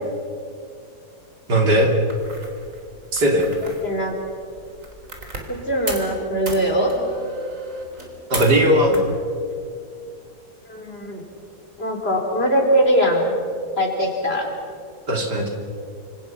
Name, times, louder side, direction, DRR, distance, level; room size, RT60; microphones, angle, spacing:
voice 1, 1.5-1.9 3.1-3.5 8.3-9.1 15.1-15.5, equal, 85° right, 2 dB, 3.9 m, -18 dB
sound 1, 2.1-5.6 5.9-6.1 6.4-8.6 8.9-9.5, right 1 dB, 50° right, 4.1 m, -35 dB
voice 2, 3.8-4.1 5.5-6.9 10.7-11.2 11.8-13.3 13.8-14.5, equal, 35° left, 1 dB, 4.5 m, -21 dB
28.0 x 26.5 x 5.9 m, 2.4 s
omnidirectional pair, 1.7 m